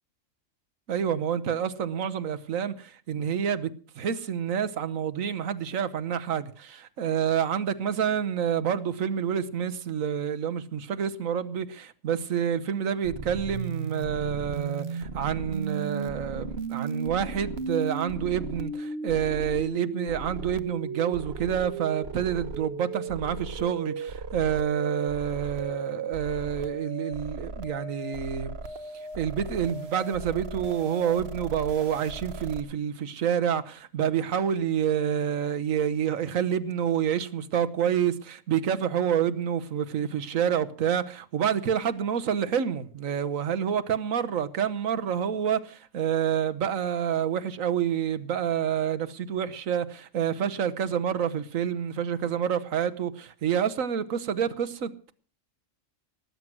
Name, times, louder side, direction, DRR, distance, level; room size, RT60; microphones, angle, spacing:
voice 1, 0.9-28.5 28.9-55.1, right 8 dB, 85° right, 1.4 m, -28 dB
sound 1, 13.0-32.6, right 4 dB, 55° right, 1.3 m, -36 dB
19.0 x 9.3 x 6.1 m
omnidirectional pair, 1.4 m